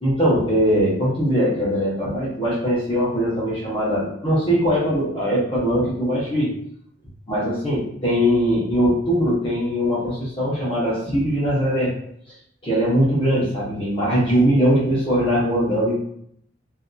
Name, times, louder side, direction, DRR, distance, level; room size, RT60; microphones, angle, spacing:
voice 1, 0.0-6.5 7.3-11.9 12.6-16.0, equal, 30° left, -7 dB, 0.9 m, -21 dB
2.7 x 2.5 x 2.2 m, 0.70 s
head